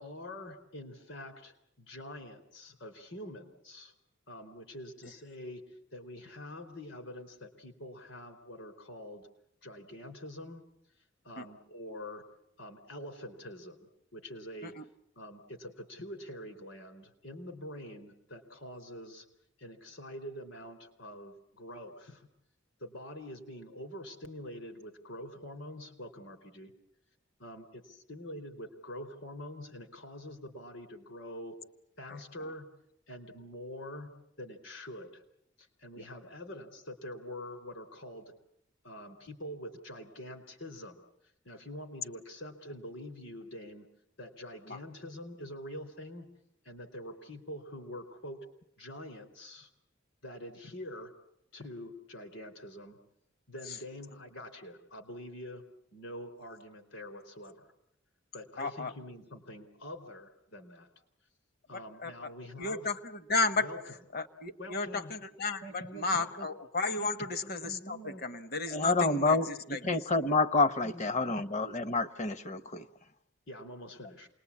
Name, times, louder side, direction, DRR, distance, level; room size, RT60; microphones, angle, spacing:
voice 1, 0.0-3.9 4.3-9.3 9.6-10.6 11.0-12.2 12.6-14.7 15.2-19.3 19.6-22.3 22.8-26.7 27.4-27.8 28.1-31.6 32.0-32.7 33.1-34.1 34.4-35.2 35.6-38.3 38.8-41.0 41.4-43.9 44.2-46.3 46.6-48.4 48.8-49.7 50.2-51.1 51.5-53.0 53.5-55.6 55.9-57.7 58.3-60.9 61.7-62.9 63.5-64.0 64.6-65.1 65.6-66.5 67.0-67.1 67.4-68.2 70.8-71.0 71.4-71.5 73.5-74.3, left 1 dB, 75° left, 4.0 m, -45 dB
voice 2, 58.6-58.9 62.0-62.1 62.6-63.0 63.3-63.7 64.1-65.6 65.9-67.6 67.9-69.4 69.7-69.8, left 3 dB, 55° left, 1.3 m, -32 dB
voice 3, 68.7-72.8, left 3 dB, 40° left, 0.9 m, -28 dB
28.0 x 20.5 x 8.5 m
head